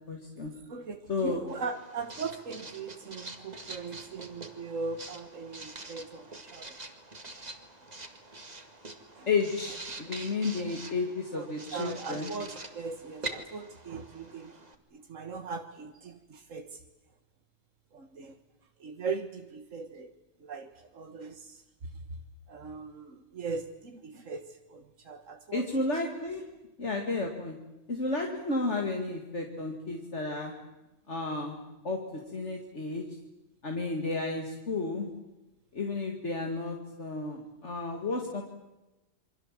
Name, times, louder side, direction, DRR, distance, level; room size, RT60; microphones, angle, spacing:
voice 1, 0.1-0.5 1.1-1.4 9.3-12.3 25.5-26.4 26.8-27.6 27.9-30.6 31.1-32.0 32.3-33.1 33.6-35.1 35.7-38.4, left 3 dB, 65° left, 2 dB, 2.7 m, -32 dB
voice 2, 0.7-6.8 9.2-9.3 10.6-10.8 11.3-14.6 14.9-16.8 17.9-18.4 18.8-20.1 20.4-21.6 22.5-25.8, right 4 dB, 90° right, 6 dB, 1.8 m, -39 dB
Writing, 1.5-14.8, right 2 dB, 35° right, 2.2 m, -45 dB
28.0 x 24.0 x 7.6 m, 1.0 s
omnidirectional pair, 1.3 m